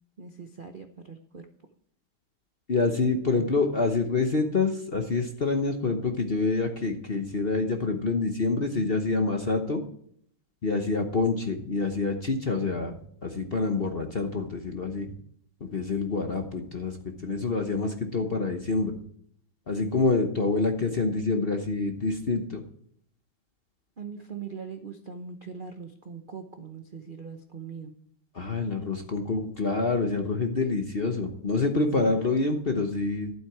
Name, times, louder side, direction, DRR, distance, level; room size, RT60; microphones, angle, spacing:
voice 1, 0.2-1.5 24.0-27.9 32.0-32.1, right 6 dB, 50° right, 6 dB, 0.6 m, -41 dB
voice 2, 2.7-9.8 10.6-15.1 15.6-17.0 17.2-19.0 19.7-22.6 28.3-33.3, left 3 dB, 40° left, 4 dB, 0.9 m, -27 dB
12.5 x 8.0 x 4.7 m, 0.64 s
omnidirectional pair, 2.1 m